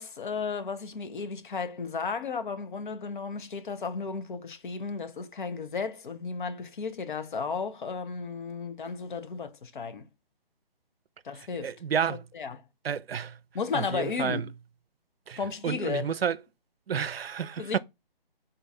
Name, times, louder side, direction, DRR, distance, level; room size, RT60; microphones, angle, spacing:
voice 1, 0.0-10.1 11.2-11.8 12.1-12.6 13.5-14.5 15.4-16.2 17.6-17.8, left 5 dB, 60° left, 0.7 m, -34 dB
voice 2, 11.6-12.2 12.8-13.4 13.7-14.5 15.3-16.4 16.9-17.8, right 7 dB, 90° right, 0.5 m, -30 dB
3.8 x 2.3 x 4.0 m
figure-of-eight pair, 145°, 29 cm